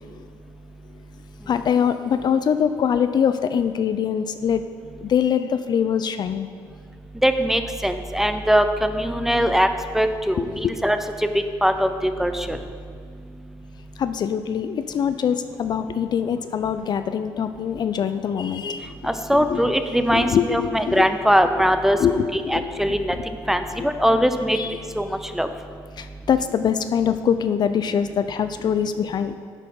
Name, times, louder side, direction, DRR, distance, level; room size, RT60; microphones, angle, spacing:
voice 1, 1.5-4.6 5.0-6.5 10.4-10.5 14.0-18.9 19.5-19.6 20.1-21.0 21.9-22.7 23.1-23.2 24.5-24.8 26.0-29.4, left 8 dB, 50° left, 10 dB, 0.3 m, -23 dB
voice 2, 7.2-9.7 9.9-11.0 11.6-12.4 19.0-22.0 22.3-23.2 23.5-24.6 25.0-25.1 25.4-25.5, equal, 5° right, 8 dB, 0.5 m, -21 dB
8.9 x 4.6 x 5.3 m, 2.2 s
supercardioid pair, 80°, 9 cm